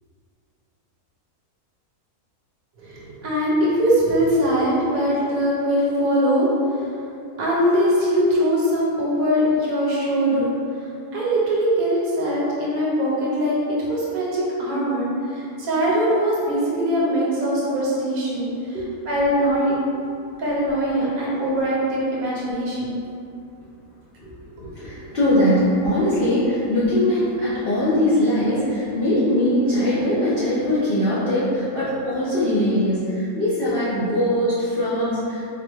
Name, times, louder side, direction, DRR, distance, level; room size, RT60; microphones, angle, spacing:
voice 1, 2.8-6.5 7.4-10.5 11.1-13.6 13.9-15.1 15.3-18.5 19.1-19.7 20.4-23.0, equal, 65° right, -6 dB, 1.2 m, -21 dB
voice 2, 24.2-35.5, left 1 dB, 55° left, -11 dB, 0.7 m, -21 dB
4.0 x 2.1 x 3.3 m, 2.6 s
omnidirectional pair, 1.6 m